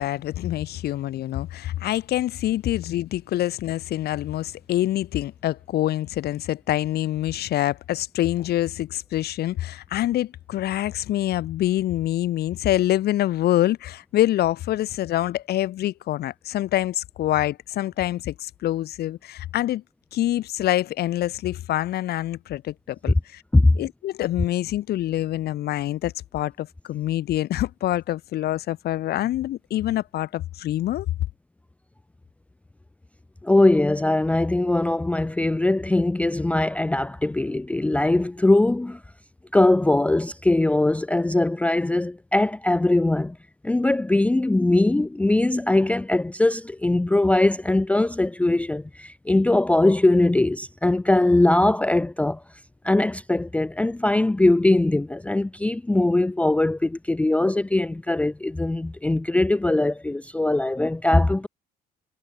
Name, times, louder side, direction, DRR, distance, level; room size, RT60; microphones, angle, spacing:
voice 1, 0.0-19.8 20.1-23.4 23.7-31.1, left 14 dB, 70° left, 5.1 m, -26 dB
voice 2, 33.4-39.0 39.5-43.4 43.6-52.4 52.8-61.5, left 2 dB, 10° left, 0.5 m, -21 dB
cardioid pair, 110°, 17 cm